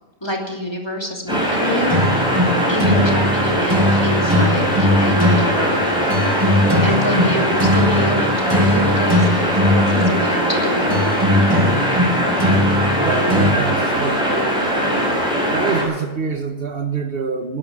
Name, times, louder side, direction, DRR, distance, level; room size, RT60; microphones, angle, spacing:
voice 1, 0.2-2.0 2.7-6.1 6.8-11.1, left 1 dB, 25° left, 0 dB, 2.9 m, -26 dB
sound 1, 1.3-15.8, equal, 5° right, 6.7 m, -20 dB
sound 2, 1.9-13.5, left 1 dB, 20° right, 1.9 m, -20 dB
voice 2, 13.0-14.7 15.5-17.6, right 5 dB, 60° right, 6 dB, 1.5 m, -25 dB
19.0 x 11.5 x 6.2 m, 1.1 s
omnidirectional pair, 1.1 m